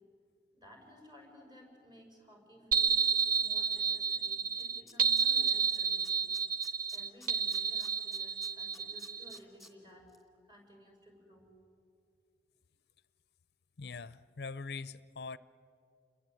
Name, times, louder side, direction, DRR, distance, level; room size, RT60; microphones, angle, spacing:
voice 1, 0.5-3.1 3.3-6.3 6.9-10.1 10.5-11.5, equal, 25° right, 1 dB, 6.4 m, -56 dB
sound 1, 2.7-9.4, right 6 dB, 50° right, 0.8 m, -30 dB
Tools, 4.2-4.3 4.6-5.8 6.0-9.7 10.1-10.2, left 2 dB, ahead, 2.5 m, -54 dB
voice 2, 13.8-15.4, left 4 dB, 65° left, 17 dB, 0.6 m, -42 dB
28.5 x 22.5 x 9.2 m, 2.5 s
head